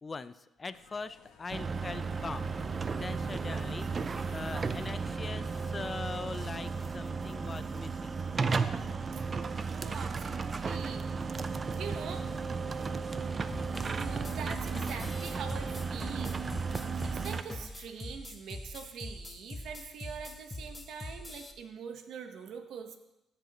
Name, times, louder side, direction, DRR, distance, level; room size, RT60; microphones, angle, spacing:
voice 1, 0.0-2.6 2.9-8.2 12.7-14.1, left 4 dB, 30° left, 13 dB, 0.5 m, -42 dB
sound 1, 0.7-6.7, left 6 dB, 85° left, 1.2 m, -59 dB
sound 2, 1.5-17.4, right 4 dB, 35° right, 0.5 m, -34 dB
voice 2, 9.5-12.3 13.9-16.4 17.1-23.0, right 6 dB, 75° right, 6 dB, 1.1 m, -44 dB
sound 3, 13.5-21.5, left 1 dB, 15° left, 1.0 m, -44 dB
16.0 x 8.0 x 3.0 m, 0.93 s
cardioid pair, 90°, 0 cm